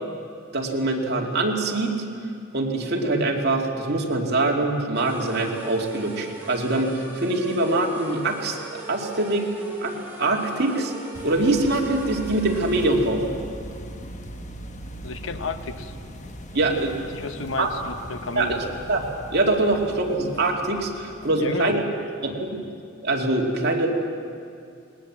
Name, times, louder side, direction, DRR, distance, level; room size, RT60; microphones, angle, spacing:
voice 1, 0.5-2.0 2.5-8.6 8.9-9.5 9.8-9.9 10.2-10.9 11.2-13.2 16.5-17.0 17.6-17.7 18.4-18.6 18.9-19.1 19.3-21.8 22.2-22.6 23.0-23.9, right 2 dB, 55° right, 0 dB, 2.4 m, -23 dB
sound 1, 4.9-13.2, right 1 dB, 10° right, 4.3 m, -40 dB
sound 2, 11.1-21.7, equal, 35° left, 1.2 m, -40 dB
voice 2, 15.0-15.9 17.1-18.7 21.3-21.8, left 3 dB, 65° left, 9 dB, 1.0 m, -31 dB
20.0 x 18.5 x 7.4 m, 2.4 s
head